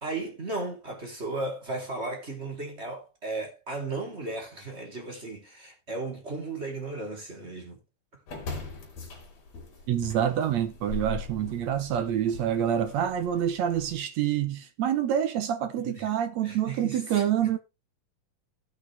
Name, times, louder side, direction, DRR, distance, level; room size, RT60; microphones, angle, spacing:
voice 1, 0.0-7.8 15.8-16.1 16.4-17.2, right 2 dB, 20° right, 2.9 m, -35 dB
sound 1, 8.3-14.0, left 3 dB, 50° left, 4.0 m, -41 dB
voice 2, 9.9-17.6, right 10 dB, 70° right, 1.7 m, -27 dB
16.5 x 6.0 x 3.4 m
omnidirectional pair, 4.1 m